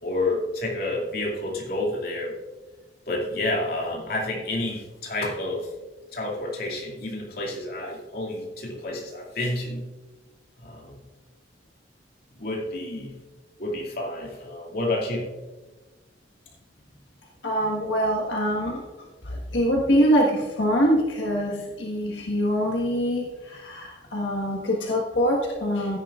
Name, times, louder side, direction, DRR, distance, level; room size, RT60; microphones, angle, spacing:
voice 1, 0.0-2.3 3.1-5.7 6.1-9.8 10.6-11.0 12.4-13.2 13.6-15.3, left 2 dB, 55° left, -2 dB, 2.5 m, -29 dB
voice 2, 17.4-26.0, equal, 90° left, -2 dB, 1.6 m, -24 dB
15.5 x 10.0 x 2.5 m, 1.3 s
head